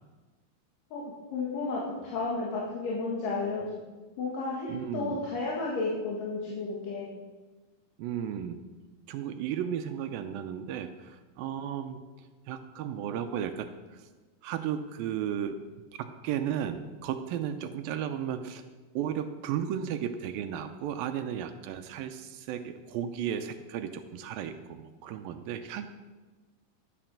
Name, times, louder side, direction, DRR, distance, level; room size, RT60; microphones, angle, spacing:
voice 1, 0.9-3.6 4.2-7.1, left 3 dB, 65° left, -4 dB, 3.3 m, -32 dB
voice 2, 4.7-5.2 8.0-8.6 9.1-12.0 12.5-14.0 14.4-15.6 15.9-18.6 19.0-25.9, right 9 dB, 80° right, 8 dB, 2.3 m, -34 dB
12.0 x 9.0 x 6.5 m, 1.3 s
omnidirectional pair, 4.5 m